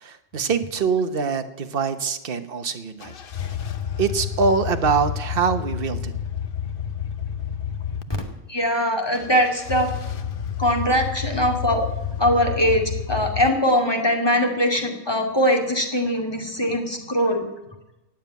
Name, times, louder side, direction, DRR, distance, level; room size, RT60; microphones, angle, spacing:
voice 1, 0.0-3.1 4.0-6.1, right 5 dB, 50° right, 7 dB, 1.3 m, -24 dB
sound 1, 3.0-8.0 9.1-13.5, left 8 dB, 50° left, 0.9 m, -30 dB
voice 2, 8.5-9.9 10.6-11.9 12.2-17.4, equal, 20° left, 2 dB, 2.5 m, -21 dB
18.5 x 7.3 x 9.4 m, 0.95 s
omnidirectional pair, 1.3 m